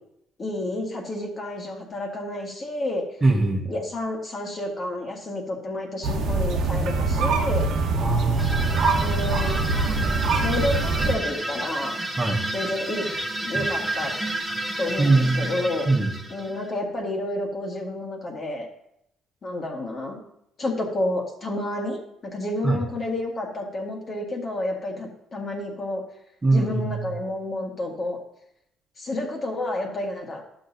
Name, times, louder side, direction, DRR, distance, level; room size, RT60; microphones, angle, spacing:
voice 1, 0.4-3.0 3.7-7.7 9.0-9.9 10.4-12.0 12.5-13.1 13.4-14.1 14.8-15.9 16.3-18.7 19.4-20.2 20.6-26.0 26.5-28.2 29.0-30.4, left 1 dB, 40° left, 0 dB, 1.7 m, -30 dB
voice 2, 3.2-3.6 8.0-9.0 12.2-12.4 13.5-13.6 15.0-15.5 15.9-16.1 22.6-22.8 26.4-27.1, right 3 dB, 25° right, 1 dB, 1.4 m, -22 dB
sound 1, 6.0-11.1, right 3 dB, 70° right, 1.1 m, -24 dB
sound 2, 8.4-16.8, right 1 dB, ahead, 1.0 m, -30 dB
11.5 x 6.3 x 2.7 m, 0.76 s
cardioid pair, 95°, 0 cm